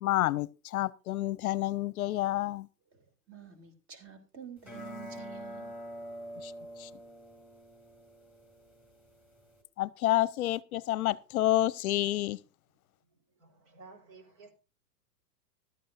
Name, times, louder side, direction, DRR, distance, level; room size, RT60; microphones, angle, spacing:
voice 1, 0.0-2.7 6.4-6.5 6.8-6.9 9.8-12.4, left 15 dB, 60° left, 0.7 m, -29 dB
voice 2, 3.3-5.7, right 8 dB, 25° right, 2.8 m, -48 dB
sound 1, 4.6-9.6, equal, 5° right, 4.4 m, -46 dB
voice 3, 13.1-14.5, right 4 dB, 55° right, 4.3 m, -54 dB
15.5 x 12.0 x 2.5 m
hypercardioid pair, 130°, 48 cm